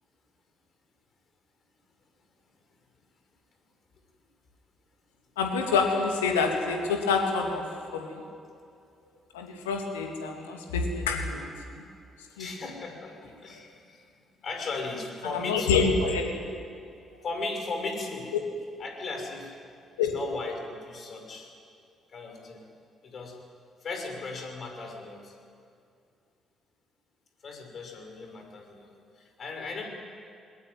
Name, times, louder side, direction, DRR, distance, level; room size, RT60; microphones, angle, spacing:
voice 1, 5.4-7.6 7.9-8.2 9.3-11.8 12.4-12.5 15.3-16.3 20.0-20.1, left 5 dB, 80° left, 2 dB, 2.8 m, -27 dB
voice 2, 12.4-14.0 14.4-15.8 17.2-18.3 18.8-19.5 20.0-21.5 22.1-22.7 23.0-23.3 23.8-25.3 27.4-29.9, left 3 dB, 50° left, 3 dB, 5.9 m, -37 dB
21.5 x 20.0 x 9.5 m, 2.5 s
figure-of-eight pair, 45°, 0 cm